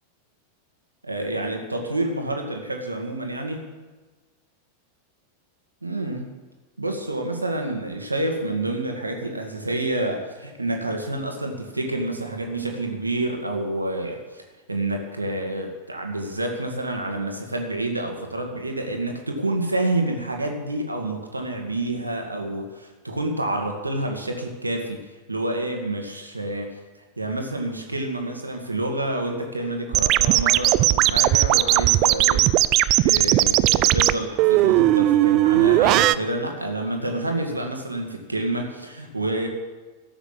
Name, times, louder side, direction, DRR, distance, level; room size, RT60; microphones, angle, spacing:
voice 1, 1.0-3.6 5.8-6.3 6.8-14.4 14.7-26.8 27.2-32.5 33.0-39.5, right 1 dB, 85° right, 3 dB, 1.8 m, -28 dB
sound 1, 29.9-36.2, right 16 dB, 40° right, 0.5 m, -18 dB
14.5 x 8.0 x 9.8 m, 1.3 s
figure-of-eight pair, 90°, 0 cm